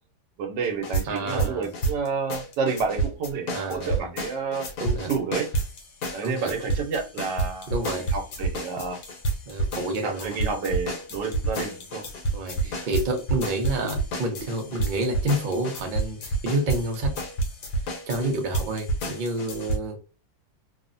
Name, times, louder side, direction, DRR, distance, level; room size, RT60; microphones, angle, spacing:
voice 1, 0.4-4.7 5.1-5.5 6.1-9.0 10.0-12.0, right 5 dB, 85° right, 4 dB, 1.4 m, -30 dB
sound 1, 0.6-19.8, right 2 dB, 70° left, 1.3 m, -29 dB
voice 2, 1.1-1.7 3.5-4.1 4.8-5.1 6.2-6.5 7.7-8.1 9.5-10.4 12.3-17.1 18.1-20.0, right 1 dB, 60° right, 3 dB, 0.5 m, -29 dB
3.2 x 2.0 x 2.5 m, 0.34 s
omnidirectional pair, 1.8 m